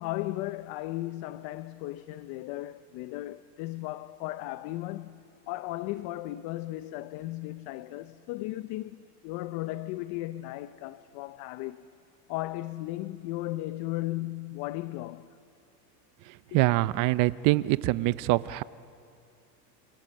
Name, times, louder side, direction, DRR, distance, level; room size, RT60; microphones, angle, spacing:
voice 1, 0.0-11.8 12.3-15.3 16.5-16.6, left 17 dB, 45° left, 0.8 m, -36 dB
voice 2, 16.3-18.6, right 19 dB, 40° right, 0.8 m, -25 dB
28.5 x 27.0 x 7.7 m
supercardioid pair, 135°, 49 cm